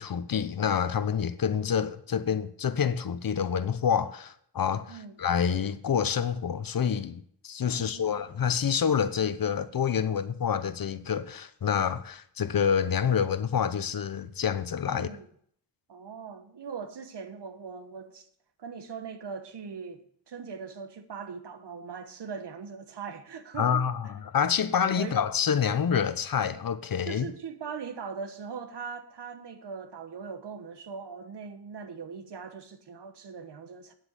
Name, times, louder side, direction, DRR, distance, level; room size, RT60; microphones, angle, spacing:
voice 1, 0.0-15.1 23.6-27.3, left 7 dB, 55° left, 0.9 m, -27 dB
voice 2, 7.7-8.2 14.9-15.3 15.9-18.3 18.6-23.9 25.0-25.2 27.1-33.9, right 5 dB, 75° right, 1.3 m, -40 dB
9.4 x 7.8 x 6.8 m
wide cardioid pair, 105°, 42 cm